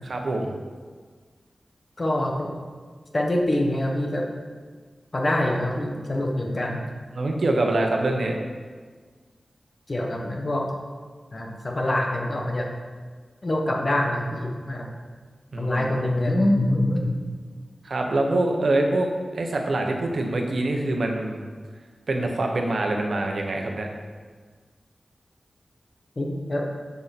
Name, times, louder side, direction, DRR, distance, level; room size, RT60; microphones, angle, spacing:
voice 1, 0.0-0.5 7.1-8.4 15.5-16.1 17.8-19.1 19.3-21.4 22.1-23.9, right 2 dB, 65° right, 2 dB, 1.1 m, -25 dB
voice 2, 2.0-2.5 3.1-4.2 5.1-6.8 9.9-10.6 11.3-12.7 13.4-14.9 15.6-17.1 26.2-26.6, left 1 dB, 40° left, 0 dB, 1.3 m, -25 dB
10.5 x 5.8 x 4.3 m, 1.5 s
wide cardioid pair, 120°, 0 cm